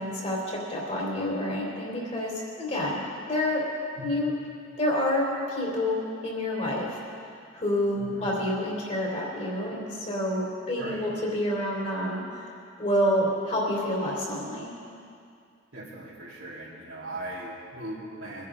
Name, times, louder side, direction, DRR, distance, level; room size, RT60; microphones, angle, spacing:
voice 1, 0.0-3.0 3.3-3.7 4.0-4.3 4.8-7.0 7.5-12.5 12.8-14.7, left 1 dB, 35° left, -3 dB, 3.5 m, -28 dB
voice 2, 8.0-8.3 10.8-11.1 15.7-18.5, right 1 dB, 75° right, -6 dB, 3.6 m, -39 dB
23.0 x 11.0 x 3.8 m, 2.4 s
head